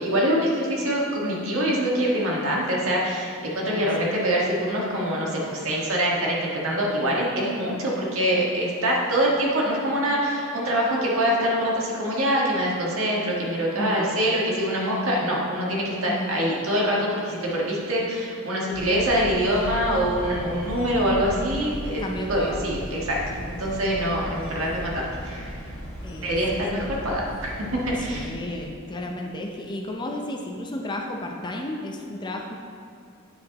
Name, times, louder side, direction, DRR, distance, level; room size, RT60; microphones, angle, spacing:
voice 1, 0.0-22.0 22.3-25.6 26.2-27.5 27.9-28.3, equal, 65° right, -4 dB, 1.6 m, -24 dB
voice 2, 3.6-4.1 13.8-14.1 16.1-16.4 22.0-22.7 26.0-26.9 28.0-32.6, left 1 dB, 20° left, 1 dB, 0.5 m, -33 dB
sound 1, 18.7-28.2, equal, 5° left, 1.7 m, -36 dB
9.1 x 7.7 x 3.0 m, 2.6 s
head